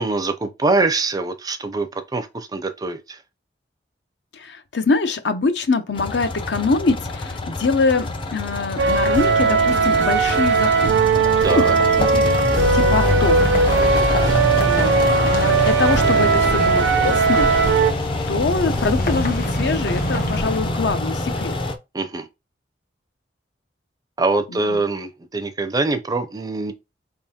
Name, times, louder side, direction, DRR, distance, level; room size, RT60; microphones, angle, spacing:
voice 1, 0.0-3.2 11.4-11.8 13.9-14.3 21.9-22.3 24.2-26.7, right 3 dB, 20° right, 0.5 m, -24 dB
voice 2, 4.3-11.7 12.0-13.6 14.1-14.9 15.2-17.5 18.3-21.5 24.5-24.8, left 3 dB, 70° left, 0.7 m, -24 dB
sound 1, 6.0-21.8, left 2 dB, 30° left, 0.5 m, -26 dB
sound 2, 8.8-17.9, right 4 dB, 85° right, 0.6 m, -18 dB
sound 3, 10.6-21.3, left 1 dB, 50° left, 1.2 m, -30 dB
4.6 x 3.7 x 2.8 m
head